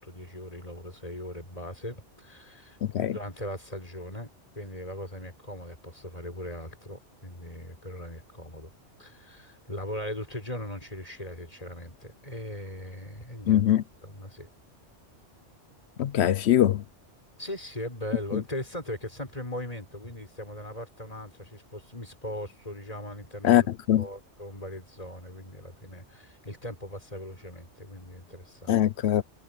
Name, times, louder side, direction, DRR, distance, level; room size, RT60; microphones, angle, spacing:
voice 1, 0.0-4.3 4.6-8.7 9.0-13.6 14.0-14.5 17.4-28.8, left 1 dB, 30° left, 5.5 m, -39 dB
voice 2, 2.8-3.2 13.5-13.8 16.0-16.8 18.3-18.4 23.4-23.6 23.9-24.1 28.7-29.2, left 11 dB, 65° left, 0.9 m, -22 dB
omnidirectional pair, 1.2 m